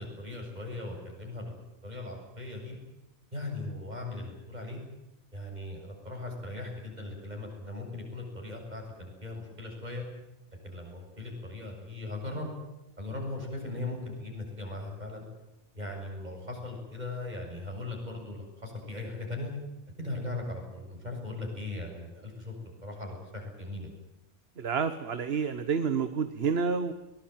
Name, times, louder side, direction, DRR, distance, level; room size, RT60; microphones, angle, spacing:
voice 1, 0.0-2.7 3.3-4.8 5.3-10.0 10.6-12.5 13.0-15.2 15.7-19.5 20.0-22.5 22.8-24.0, left 2 dB, 35° right, 1 dB, 7.6 m, -39 dB
voice 2, 24.6-26.9, right 5 dB, 60° right, 11 dB, 1.4 m, -29 dB
23.0 x 20.5 x 9.2 m, 0.95 s
omnidirectional pair, 1.2 m